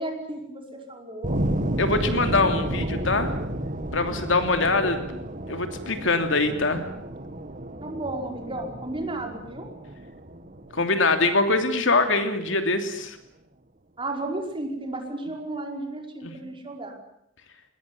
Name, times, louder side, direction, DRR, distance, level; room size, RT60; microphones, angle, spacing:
voice 1, 0.0-1.4 2.8-2.9 4.6-4.9 7.8-9.7 14.0-17.0, right 2 dB, 25° right, 3 dB, 5.2 m, -33 dB
sound 1, 1.2-12.0, right 1 dB, 45° right, 1.8 m, -32 dB
voice 2, 1.8-3.3 3.9-5.0 5.5-6.8 10.7-13.2 16.2-16.3, left 3 dB, 70° left, 7 dB, 3.0 m, -23 dB
21.5 x 20.5 x 9.8 m, 0.76 s
head